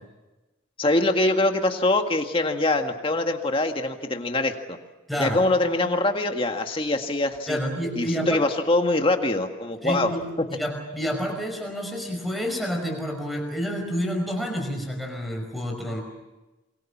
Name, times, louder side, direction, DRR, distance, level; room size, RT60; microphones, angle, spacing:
voice 1, 0.8-4.8 5.2-7.6 8.0-10.1, left 2 dB, 25° left, 5 dB, 1.9 m, -23 dB
voice 2, 5.1-5.4 7.5-8.5 9.8-10.2 10.5-16.0, equal, ahead, 1 dB, 5.3 m, -29 dB
27.0 x 23.0 x 7.4 m, 1.1 s
head